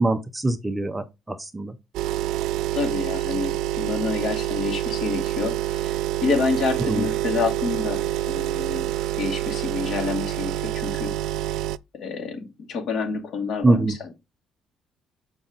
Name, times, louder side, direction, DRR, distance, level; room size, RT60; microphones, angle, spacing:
voice 1, 0.0-1.7 6.9-7.0 13.6-13.9, right 2 dB, 10° right, 0.6 m, -23 dB
sound 1, 1.9-11.8, right 14 dB, 85° right, 0.3 m, -27 dB
voice 2, 2.7-8.9 9.2-11.2 11.9-14.1, left 4 dB, 55° left, 2.5 m, -28 dB
7.2 x 5.1 x 3.9 m
cardioid pair, 155°, 0 cm